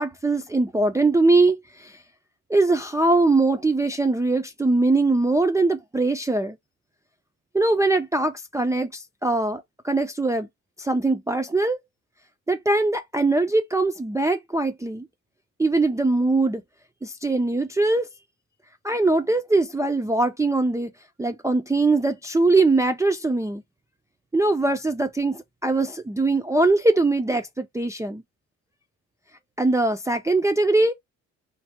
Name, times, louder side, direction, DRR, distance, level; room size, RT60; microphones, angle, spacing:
voice 1, 0.0-2.0 2.5-6.6 7.5-10.5 10.8-11.8 12.5-15.1 15.6-16.6 17.0-18.1 18.8-20.9 21.2-23.6 24.3-28.2 29.6-30.9, right 2 dB, 10° right, 0.3 m, -22 dB
3.2 x 2.0 x 2.8 m
cardioid pair, 90°, 30 cm